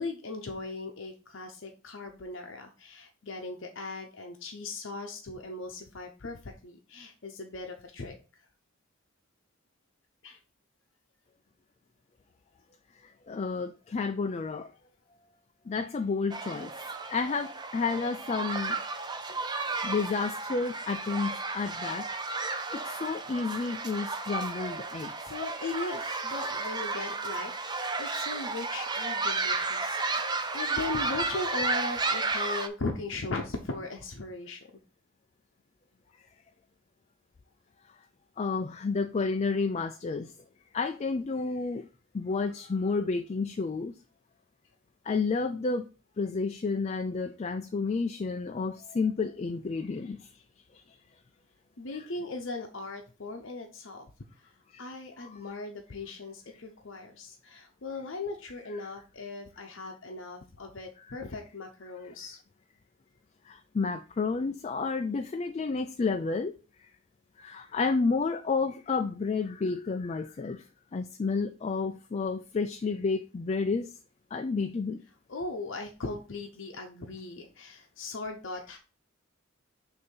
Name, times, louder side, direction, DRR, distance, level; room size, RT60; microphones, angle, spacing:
voice 1, 0.0-8.2 10.2-10.4 25.3-34.6 51.8-54.1 54.8-62.4 75.3-78.8, left 3 dB, 65° left, 0.8 m, -38 dB
voice 2, 13.3-14.7 15.7-16.7 17.1-18.8 19.8-22.1 22.7-25.1 38.4-40.3 40.7-41.8 42.1-43.9 45.1-45.9 46.2-50.3 50.9-51.0 54.7-54.8 55.2-55.4 63.5-66.5 67.4-70.6 70.9-73.9 74.3-75.0, left 4 dB, 30° left, 0.3 m, -30 dB
sound 1, 16.3-32.7, right 3 dB, 20° right, 0.5 m, -33 dB
6.6 x 2.8 x 5.4 m
head